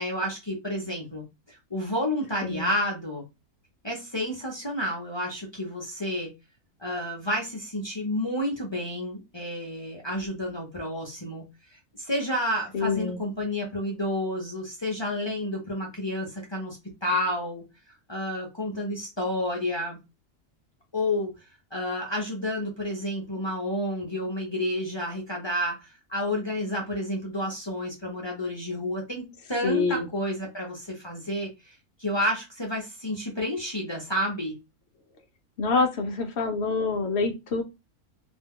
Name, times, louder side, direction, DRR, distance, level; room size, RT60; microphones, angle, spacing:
voice 1, 0.0-3.2 3.8-6.3 6.8-11.4 12.0-17.6 18.1-20.0 20.9-21.3 21.7-34.6, left 1 dB, 30° left, -2 dB, 0.5 m, -30 dB
voice 2, 12.7-13.2 29.6-30.1 35.6-37.6, left 4 dB, 70° left, 6 dB, 0.6 m, -26 dB
2.7 x 2.2 x 3.5 m, 0.24 s
omnidirectional pair, 1.6 m